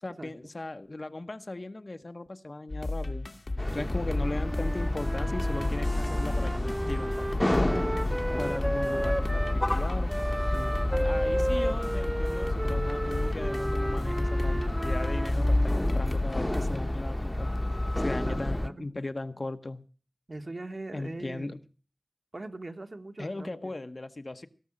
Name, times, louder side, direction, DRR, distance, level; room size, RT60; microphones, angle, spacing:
voice 1, 0.0-3.3 3.7-7.9 8.4-10.1 10.9-17.5 18.0-19.8 20.9-21.6 23.2-24.5, left 2 dB, 50° left, 0.9 m, -37 dB
sound 1, 2.7-16.8, left 2 dB, 70° left, 1.6 m, -33 dB
sound 2, 3.6-18.7, left 1 dB, 20° left, 1.0 m, -30 dB
voice 2, 3.8-4.4 8.6-8.7 10.5-10.8 16.4-16.8 18.2-18.9 20.3-21.5 22.3-23.7, right 2 dB, 60° right, 1.6 m, -41 dB
Wind instrument woodwind instrument, 4.1-9.6 10.1-15.9, right 1 dB, 20° right, 0.8 m, -34 dB
17.0 x 6.2 x 8.7 m
wide cardioid pair, 45°, 0 cm